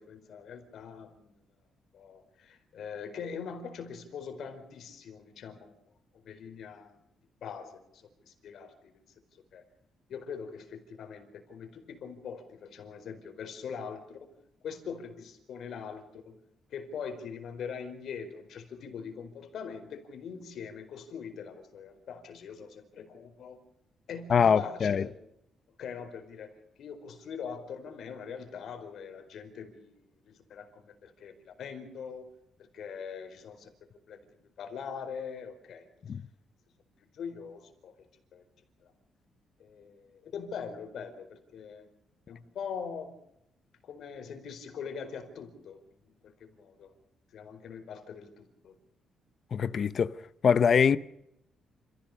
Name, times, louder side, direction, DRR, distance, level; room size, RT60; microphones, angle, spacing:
voice 1, 0.0-1.3 1.9-5.7 6.2-7.0 7.4-9.0 9.3-9.6 10.1-14.2 14.6-16.4 16.7-23.6 24.1-25.1 25.8-26.5 26.8-32.3 32.6-33.7 34.1-35.9 37.0-37.9 38.3-38.4 38.8-38.9 39.6-41.9 42.3-43.1 43.8-46.9 47.3-48.8, left 6 dB, 65° left, 4.7 m, -42 dB
voice 2, 24.3-25.0 36.1-36.2 49.5-50.1 50.4-51.0, left 6 dB, 45° left, 0.8 m, -23 dB
28.0 x 16.0 x 6.7 m
cardioid pair, 135°, 0 cm